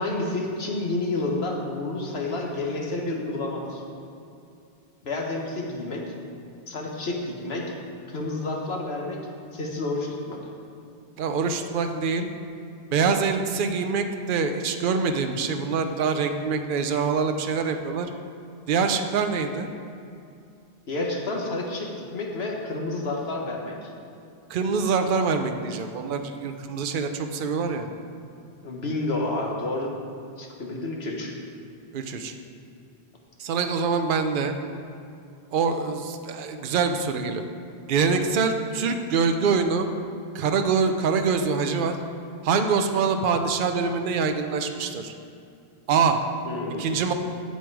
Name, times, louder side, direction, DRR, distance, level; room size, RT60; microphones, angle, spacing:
voice 1, 0.0-3.8 5.0-6.0 6.7-7.7 8.1-9.2 9.5-10.4 20.9-23.9 28.6-29.9 30.4-31.3 46.4-46.9, left 2 dB, 80° left, 0 dB, 1.5 m, -30 dB
voice 2, 11.2-12.3 12.9-18.1 18.7-19.7 24.5-27.9 31.9-32.3 33.4-34.5 35.5-37.4 37.9-39.9 40.3-42.0 42.4-45.1 45.9-46.2 46.8-47.1, right 5 dB, 60° right, 6 dB, 0.8 m, -24 dB
8.3 x 7.8 x 4.7 m, 2.5 s
omnidirectional pair, 1.0 m